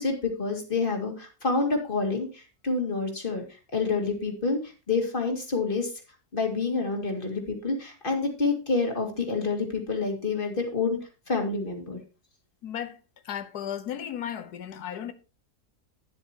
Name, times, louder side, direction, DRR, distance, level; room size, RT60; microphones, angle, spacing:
voice 1, 0.0-3.4 3.7-5.9 6.3-11.0 11.3-12.0, left 4 dB, 35° left, 2.3 m, -28 dB
voice 2, 12.6-13.0 13.2-15.1, left 9 dB, 80° left, 1.5 m, -35 dB
11.5 x 9.8 x 2.9 m
omnidirectional pair, 1.7 m